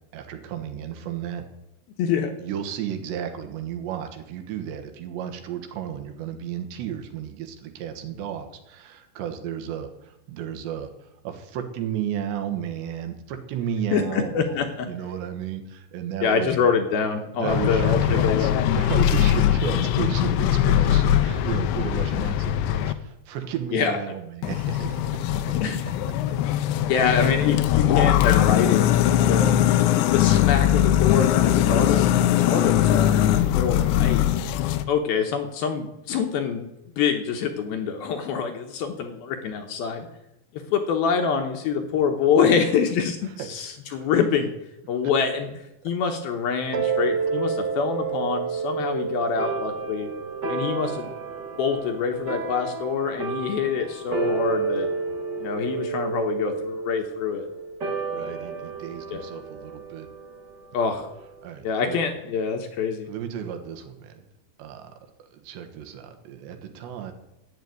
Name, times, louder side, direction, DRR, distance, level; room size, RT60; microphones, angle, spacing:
voice 1, 0.1-1.4 2.4-16.6 17.4-25.3 43.4-44.1 58.1-60.1 61.4-62.0 63.1-64.3 64.6-67.1, right 9 dB, 75° right, 6 dB, 3.4 m, -33 dB
voice 2, 2.0-2.3 13.9-14.9 16.2-18.6 23.7-24.0 25.4-26.0 26.9-29.6 30.1-32.1 32.5-34.6 34.9-36.7 37.0-40.1 40.5-44.5 44.9-45.5 45.8-50.1 50.5-51.1 51.6-54.9 55.4-57.5 58.2-58.3 59.1-59.2 60.7-61.1 61.6-63.1, left 6 dB, 70° left, 5 dB, 2.6 m, -25 dB
sound 1, 17.5-22.9 24.4-34.8, left 11 dB, 90° left, 3.0 m, -21 dB
sound 2, 46.7-61.5, right 4 dB, 60° right, 1.1 m, -30 dB
11.5 x 8.2 x 9.4 m, 0.87 s
omnidirectional pair, 5.1 m